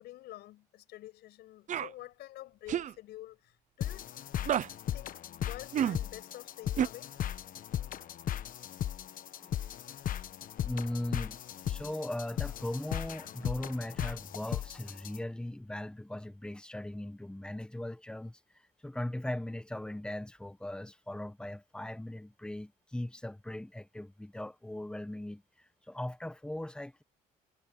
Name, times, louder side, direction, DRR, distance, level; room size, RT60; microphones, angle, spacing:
voice 1, 0.0-4.1 4.9-7.1, left 15 dB, 75° left, 6.7 m, -48 dB
sound 1, 1.7-1.9 2.7-2.9 4.5-4.7 5.7-6.0 6.8-6.9, right 10 dB, 45° right, 0.8 m, -29 dB
sound 2, 3.8-15.2, left 11 dB, 55° left, 1.2 m, -37 dB
voice 2, 10.6-18.4 18.8-25.4 25.9-27.0, left 1 dB, 5° left, 1.5 m, -39 dB
cardioid pair, 110°, 17 cm